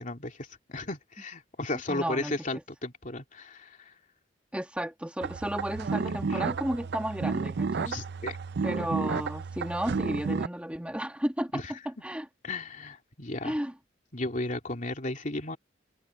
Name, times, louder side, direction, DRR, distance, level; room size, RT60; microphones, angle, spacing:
voice 1, 0.0-3.9 6.3-6.4 7.9-8.4 11.5-11.7 12.4-13.6 14.1-15.6, left 2 dB, 45° left, 3.1 m, -35 dB
voice 2, 1.9-2.3 4.5-8.0 8.6-12.3 13.4-13.7, right 1 dB, 5° right, 1.4 m, -33 dB
sound 1, 5.2-10.5, right 4 dB, 60° right, 0.5 m, -31 dB
head